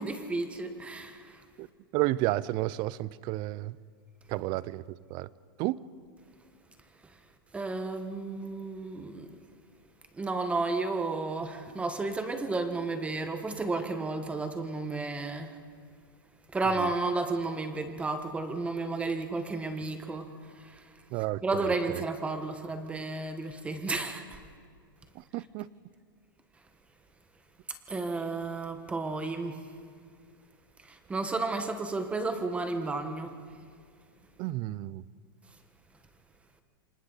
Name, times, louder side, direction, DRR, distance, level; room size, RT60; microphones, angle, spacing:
voice 1, 0.0-1.4 7.5-9.4 10.1-15.5 16.5-20.3 20.6-20.8 21.4-24.4 27.9-29.6 30.9-33.3, right 3 dB, 10° right, 1.3 m, -32 dB
voice 2, 1.9-3.7 4.3-4.8 5.1-5.3 5.6-5.8 21.1-21.4 25.3-25.7 34.4-35.0, right 17 dB, 35° right, 0.5 m, -31 dB
28.0 x 25.0 x 4.1 m
supercardioid pair, 140°, 12 cm